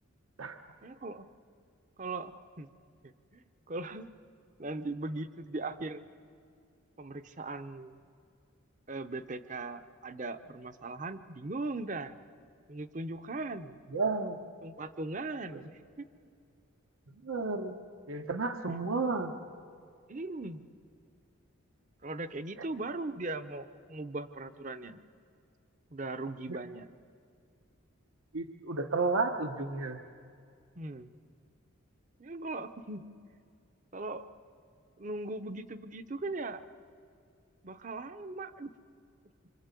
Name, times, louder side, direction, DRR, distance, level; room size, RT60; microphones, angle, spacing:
voice 1, 0.8-1.2 2.0-2.7 3.0-4.1 4.6-6.0 7.0-7.9 8.9-12.2 12.7-13.8 14.6-15.7 16.0-16.1 20.1-20.6 22.0-25.0 25.9-26.9 30.8-31.1 32.2-33.1 33.9-34.3 35.0-36.6 37.6-38.7, right 2 dB, 35° right, 11 dB, 0.8 m, -39 dB
voice 2, 13.9-14.4 15.5-15.6 17.1-17.8 18.1-19.3 22.6-22.7 26.5-26.6 28.3-30.0, right 3 dB, 75° right, 5 dB, 1.2 m, -32 dB
26.5 x 25.0 x 8.3 m, 2.3 s
head